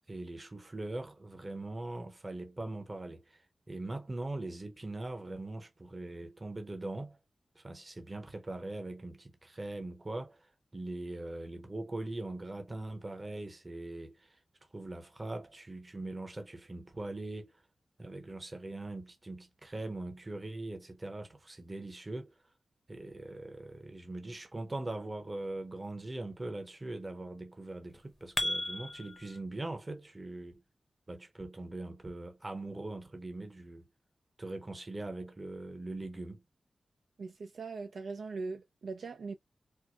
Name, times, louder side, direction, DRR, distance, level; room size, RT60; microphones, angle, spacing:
voice 1, 0.1-7.2 7.5-14.4 14.7-17.6 18.0-22.4 22.9-30.6 31.1-33.9 34.4-36.4, right 2 dB, 25° right, 0.8 m, -41 dB
sound 1, 27.9-29.4, left 1 dB, 15° left, 0.7 m, -35 dB
voice 2, 37.2-39.3, right 4 dB, 75° right, 0.5 m, -40 dB
4.5 x 2.1 x 2.3 m
wide cardioid pair, 130°, 0 cm